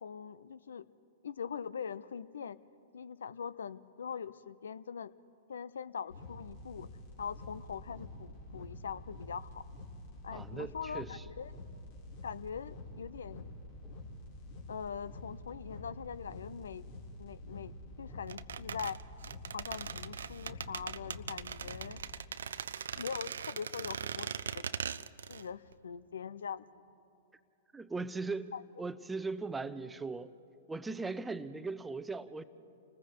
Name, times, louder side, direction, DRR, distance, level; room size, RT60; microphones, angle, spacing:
voice 1, 0.0-0.9 1.2-2.6 2.9-5.1 5.5-6.9 7.2-9.6 10.2-11.6 12.2-13.5 14.7-16.8 17.2-19.0 19.5-22.0 22.9-24.7 25.3-26.6 28.5-28.6, left 7 dB, 75° left, 0.6 m, -42 dB
sound 1, 6.1-22.1, left 1 dB, 55° left, 3.2 m, -48 dB
voice 2, 10.3-11.2 27.7-28.5 28.8-30.3 30.7-32.4, right 3 dB, 10° right, 0.7 m, -39 dB
sound 2, 18.3-25.5 25.7-25.8, right 7 dB, 75° right, 0.5 m, -40 dB
30.0 x 20.0 x 4.6 m
figure-of-eight pair, 110°, 0 cm